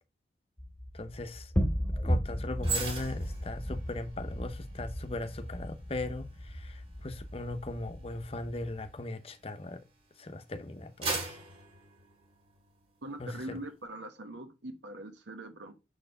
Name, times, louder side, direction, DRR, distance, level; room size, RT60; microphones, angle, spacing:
sound 1, 0.6-8.9, equal, 10° left, 2.0 m, -35 dB
voice 1, 0.9-1.5 2.0-9.8 10.2-11.4 13.2-13.3, left 2 dB, 35° left, 0.8 m, -39 dB
sound 2, 2.6-10.0 10.5-12.8 13.2-13.4, right 3 dB, 35° right, 2.7 m, -41 dB
voice 2, 13.0-15.7, right 1 dB, 85° right, 1.1 m, -42 dB
6.8 x 4.5 x 5.4 m
head